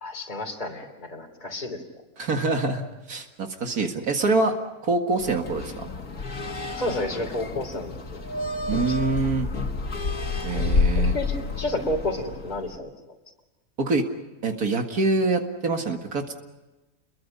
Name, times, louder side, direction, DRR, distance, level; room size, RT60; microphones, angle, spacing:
voice 1, 0.0-1.8 6.8-8.2 8.7-9.0 10.5-10.7 11.0-12.9, left 1 dB, 30° left, 0 dB, 3.3 m, -31 dB
voice 2, 2.2-4.5 4.8-5.9 8.7-9.5 10.4-11.1 13.8-14.1 14.4-16.3, right 3 dB, 85° right, 4 dB, 2.4 m, -25 dB
sound 1, 5.2-12.8, left 3 dB, 80° left, 2.5 m, -29 dB
30.0 x 22.5 x 5.5 m, 1.1 s
omnidirectional pair, 1.5 m